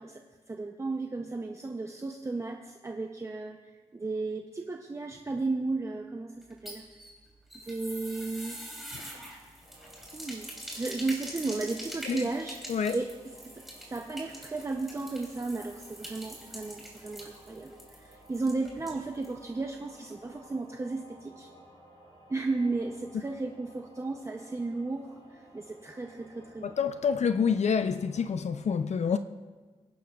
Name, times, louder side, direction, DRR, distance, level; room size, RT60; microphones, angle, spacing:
voice 1, 0.0-3.6 3.9-6.8 7.6-8.6 10.1-10.5 10.7-13.1 13.5-21.5 22.3-26.7, right 3 dB, 25° right, 0.6 m, -34 dB
sound 1, 6.4-19.4 19.7-19.8 20.1-20.2, right 1 dB, ahead, 3.0 m, -44 dB
sound 2, 9.6-28.2, right 1 dB, 50° left, 4.6 m, -56 dB
voice 2, 26.6-29.2, left 6 dB, 65° left, 0.4 m, -27 dB
25.0 x 11.5 x 2.3 m
wide cardioid pair, 155°, 12 cm